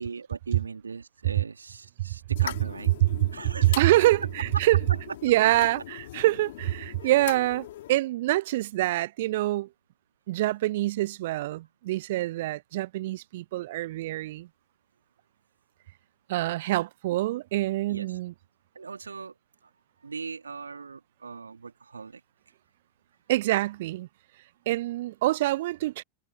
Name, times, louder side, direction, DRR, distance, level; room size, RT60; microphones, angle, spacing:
voice 1, 0.0-2.9 3.3-3.8 4.9-5.0 7.0-7.1 12.2-12.3 17.9-18.2 18.7-19.3 19.6-19.7 20.0-22.2, right 5 dB, 75° right, 2.7 m, -39 dB
sound 1, 2.4-8.0, left 14 dB, 55° left, 4.2 m, -41 dB
voice 2, 3.6-4.8 5.2-9.7 10.3-14.5 16.3-18.3 23.3-24.1 24.7-26.0, right 16 dB, 55° right, 0.6 m, -25 dB
figure-of-eight pair, 90°, 0 cm